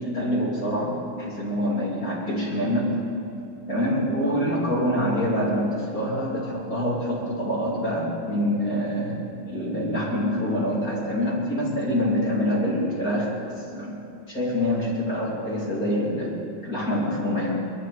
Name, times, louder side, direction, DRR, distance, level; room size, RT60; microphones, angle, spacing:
voice 1, 0.0-3.0 3.7-9.2 9.5-14.0 14.3-16.3 16.6-17.6, equal, 25° left, -7 dB, 2.2 m, -25 dB
22.5 x 14.0 x 4.2 m, 2.8 s
omnidirectional pair, 5.8 m